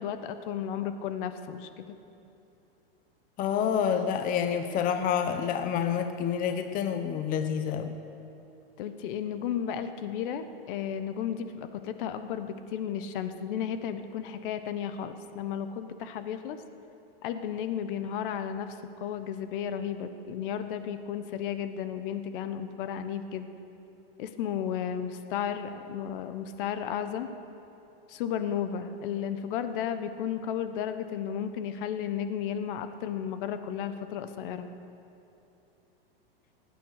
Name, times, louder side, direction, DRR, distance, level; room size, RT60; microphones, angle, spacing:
voice 1, 0.0-1.9 8.8-16.6 17.2-23.5 24.2-27.3 28.1-34.7, left 8 dB, 60° left, 9 dB, 1.2 m, -33 dB
voice 2, 3.4-8.0, left 8 dB, 30° left, 8 dB, 0.9 m, -28 dB
22.0 x 9.2 x 6.6 m, 2.9 s
supercardioid pair, 135°, 30 cm